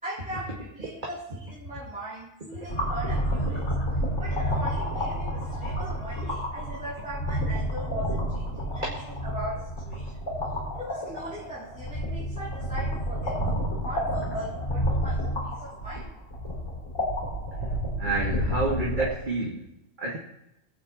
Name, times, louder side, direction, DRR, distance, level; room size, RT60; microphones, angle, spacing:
voice 1, 0.0-3.7 4.2-10.2 10.7-16.1, equal, 5° right, -9 dB, 3.1 m, -39 dB
sound 1, 2.7-19.1, equal, 80° left, 4.2 m, -30 dB
voice 2, 18.0-19.6 20.0-20.2, right 3 dB, 40° right, -4 dB, 2.1 m, -28 dB
22.5 x 9.0 x 3.1 m, 0.83 s
omnidirectional pair, 1.3 m